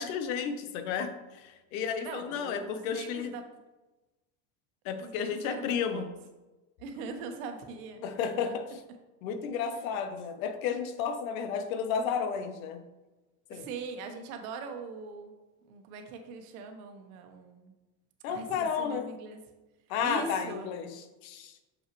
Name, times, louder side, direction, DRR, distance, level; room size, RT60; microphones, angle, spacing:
voice 1, 0.0-3.3 4.8-6.1 8.0-8.7 9.2-12.8 13.5-13.7 18.2-19.1 19.9-20.9 21.2-21.5, left 7 dB, 80° left, 9 dB, 0.9 m, -32 dB
voice 2, 2.0-3.4 5.0-6.1 6.8-8.0 8.5-8.6 13.5-15.4 15.6-17.7 18.3-19.4 20.0-20.7, right 4 dB, 85° right, 5 dB, 1.1 m, -41 dB
6.5 x 5.6 x 3.0 m, 1.1 s
cardioid pair, 165°, 41 cm